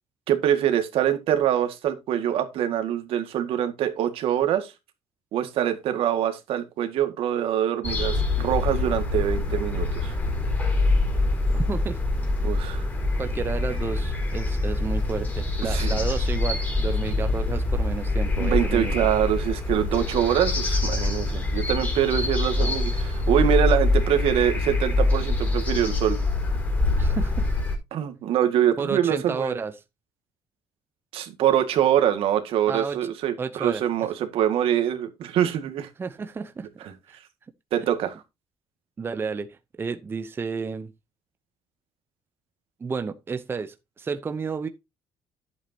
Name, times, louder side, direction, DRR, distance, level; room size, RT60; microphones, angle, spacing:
voice 1, 0.3-4.7 5.3-10.1 12.4-12.8 15.7-16.0 18.4-26.2 27.9-29.6 31.1-35.9 37.7-38.1, right 10 dB, 70° right, 1.9 m, -24 dB
sound 1, 7.8-27.8, left 2 dB, 20° left, 4.2 m, -25 dB
voice 2, 11.5-12.0 13.2-18.9 27.0-27.5 28.8-29.8 32.7-33.0 33.4-33.8 36.0-36.7 37.1-37.2 39.0-40.9 42.8-44.7, right 5 dB, 25° right, 0.8 m, -31 dB
11.0 x 8.3 x 2.8 m
cardioid pair, 140°, 10 cm